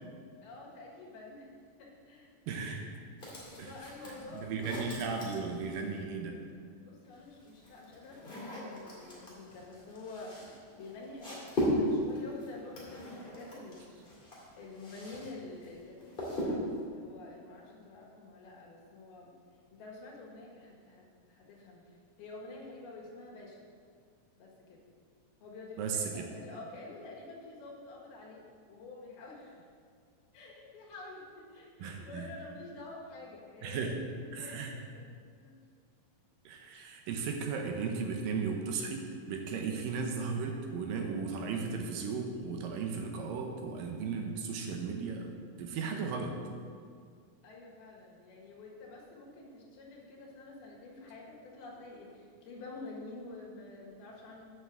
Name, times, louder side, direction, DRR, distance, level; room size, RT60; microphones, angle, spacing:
voice 1, 0.4-1.5 1.8-2.7 3.5-4.7 5.1-5.2 6.8-13.8 14.6-19.3 19.7-23.6 24.4-24.8 25.4-29.7 30.3-33.9 34.3-35.1 35.4-35.6 39.4-39.7 47.4-54.5, left 2 dB, 90° left, -3 dB, 3.7 m, -48 dB
voice 2, 2.5-2.9 3.6-3.7 4.3-6.4 25.8-26.3 31.8-32.3 33.6-34.0 34.3-34.7 36.5-46.4, right 5 dB, 75° right, 3 dB, 2.4 m, -36 dB
sound 1, 3.2-6.0 7.0-15.3 15.6-16.8, left 1 dB, 15° left, 2.1 m, -38 dB
9.4 x 6.0 x 7.3 m, 2.2 s
omnidirectional pair, 4.3 m